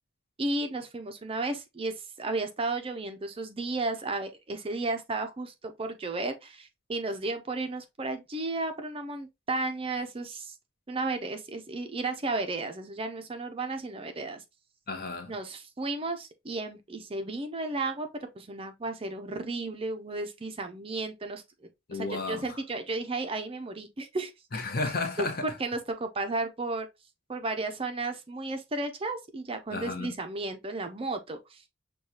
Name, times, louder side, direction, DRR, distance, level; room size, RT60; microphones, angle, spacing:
voice 1, 0.4-10.5 10.9-14.4 15.3-18.1 18.4-21.4 21.9-24.3 25.2-25.3 25.6-26.9 27.3-31.7, right 2 dB, 25° right, 0.5 m, -33 dB
voice 2, 14.9-15.3 21.9-22.6 24.5-25.4 29.7-30.1, left 3 dB, 45° left, 0.9 m, -32 dB
6.4 x 2.3 x 2.7 m
head